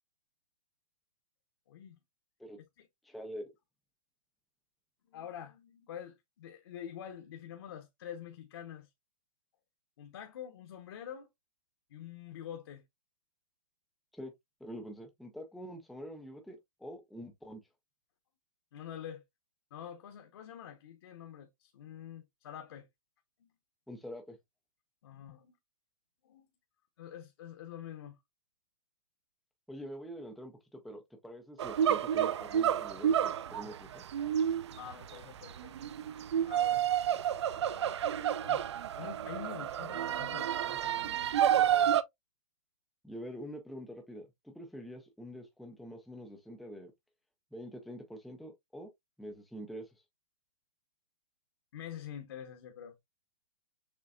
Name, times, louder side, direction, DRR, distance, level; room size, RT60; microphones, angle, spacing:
voice 1, 1.7-2.0 2.8-2.9 5.1-8.9 10.0-11.3 11.9-12.8 18.7-19.2 19.7-22.9 23.4-23.5 25.0-25.5 26.2-26.5 27.0-28.2 34.7-35.7 36.4-41.7 51.7-52.9, left 9 dB, 45° left, 0.9 m, -47 dB
voice 2, 3.0-3.5 14.1-14.3 14.6-17.6 23.9-24.4 29.7-34.0 43.0-46.9 47.5-48.9 49.2-49.9, equal, ahead, 0.4 m, -46 dB
sound 1, 31.6-42.0, right 10 dB, 55° right, 0.5 m, -30 dB
6.7 x 3.2 x 2.4 m
hypercardioid pair, 170°, 17 cm